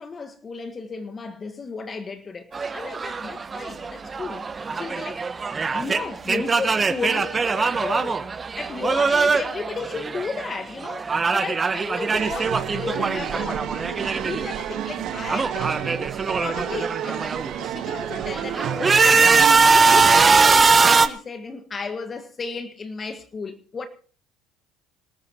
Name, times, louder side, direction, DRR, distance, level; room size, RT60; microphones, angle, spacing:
voice 1, 0.0-5.2 5.7-8.3 8.6-16.1 16.4-19.4 19.7-23.9, left 4 dB, 30° left, 1.6 m, -34 dB
sound 1, 2.5-10.6 10.8-14.6 14.8-17.5 18.0-21.1, right 4 dB, 25° right, 1.2 m, -21 dB
sound 2, 12.1-20.3, right 12 dB, 60° right, 1.4 m, -31 dB
25.5 x 13.5 x 3.0 m
hypercardioid pair, 75°, 0 cm